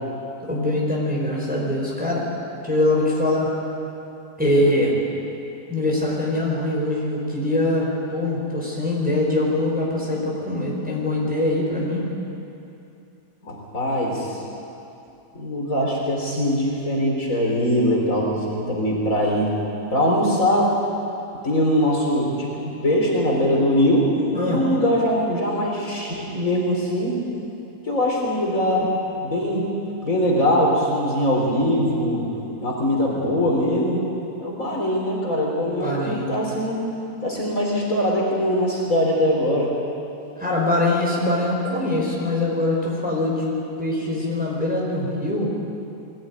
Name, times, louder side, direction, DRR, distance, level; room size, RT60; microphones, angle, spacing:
voice 1, 0.4-2.3 2.6-3.5 4.4-5.0 5.7-12.0 24.3-24.6 35.8-36.3 40.4-45.5, left 1 dB, 5° right, -4 dB, 4.8 m, -23 dB
voice 2, 13.4-14.4 15.3-19.5 19.9-20.8 21.4-24.1 24.4-27.2 27.8-29.7 30.0-32.3 32.6-34.0 34.4-36.8 37.2-39.7, equal, 50° left, -3 dB, 4.2 m, -22 dB
21.5 x 16.5 x 9.7 m, 2.8 s
omnidirectional pair, 1.8 m